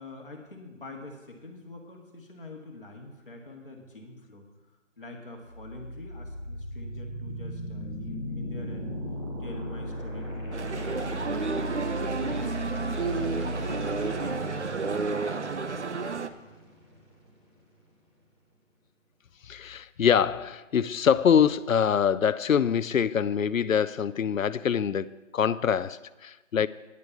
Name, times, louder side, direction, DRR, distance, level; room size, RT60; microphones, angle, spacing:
voice 1, 0.0-4.4 5.0-8.9 9.4-14.4, left 2 dB, 45° left, 0 dB, 1.7 m, -45 dB
sound 1, 5.5-17.5, equal, 20° right, 1.5 m, -37 dB
Male speech man speaking, 10.5-16.3, right 4 dB, 60° right, 0.7 m, -31 dB
voice 2, 19.4-26.7, left 7 dB, 85° left, 18 dB, 0.5 m, -24 dB
9.7 x 5.1 x 8.1 m, 1.2 s
figure-of-eight pair, 175°, 39 cm